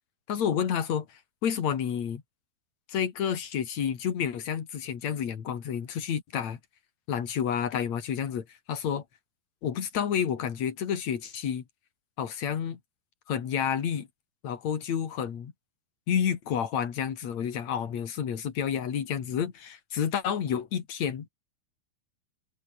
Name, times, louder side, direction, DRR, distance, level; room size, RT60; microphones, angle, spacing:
voice 1, 0.3-2.2 2.9-6.6 7.1-9.0 9.6-11.6 12.2-12.8 13.3-14.1 14.4-15.5 16.1-21.3, left 8 dB, 50° left, 3.2 m, -30 dB
omnidirectional pair, 4.5 m